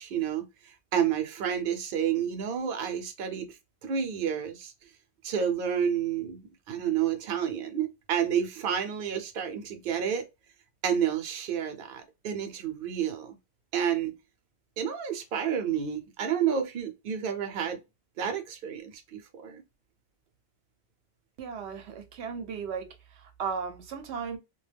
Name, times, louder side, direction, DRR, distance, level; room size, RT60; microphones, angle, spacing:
voice 1, 0.0-3.6 3.8-4.7 5.2-6.4 6.7-10.2 10.8-13.4 13.7-14.2 14.8-17.8 18.2-19.6, right 8 dB, 60° right, 0.7 m, -30 dB
voice 2, 21.4-24.4, right 6 dB, 90° right, 0.9 m, -36 dB
2.2 x 2.2 x 3.2 m
omnidirectional pair, 1.1 m